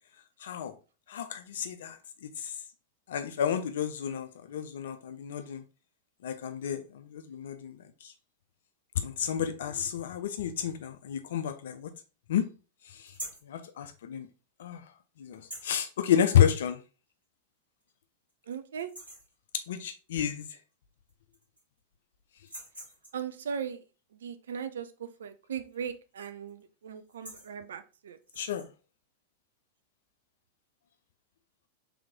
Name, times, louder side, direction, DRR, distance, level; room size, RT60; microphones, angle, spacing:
voice 1, 0.4-0.7 1.1-2.6 3.1-5.6 6.2-8.1 9.0-11.9 12.3-12.4 12.9-13.1 13.4-14.3 14.6-14.8 15.2-16.8 19.7-20.5 28.4-28.7, left 9 dB, 60° left, 8 dB, 0.4 m, -30 dB
sound 1, 13.0-13.5 15.3-15.9 17.2-17.3 17.8-17.9 18.3-18.5 18.8-19.3 20.7-20.8 21.1-21.8 22.4-23.3 25.6-25.9 26.2-26.5 27.0-27.5 28.2-28.7, right 1 dB, 80° right, 1.8 m, -45 dB
voice 2, 18.5-18.9 23.1-23.8 24.1-28.2, right 7 dB, 65° right, 10 dB, 0.4 m, -38 dB
3.4 x 3.1 x 3.5 m, 0.34 s
figure-of-eight pair, 90°, 0 cm